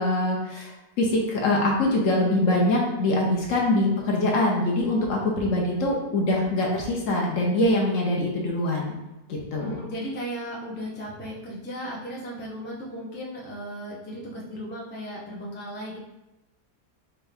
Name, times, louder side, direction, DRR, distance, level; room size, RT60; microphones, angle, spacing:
voice 1, 0.0-9.0 9.3-9.8, left 1 dB, 60° left, -1 dB, 1.0 m, -24 dB
voice 2, 9.6-16.0, equal, 15° left, -5 dB, 0.3 m, -36 dB
4.5 x 2.6 x 3.3 m, 1.0 s
omnidirectional pair, 1.7 m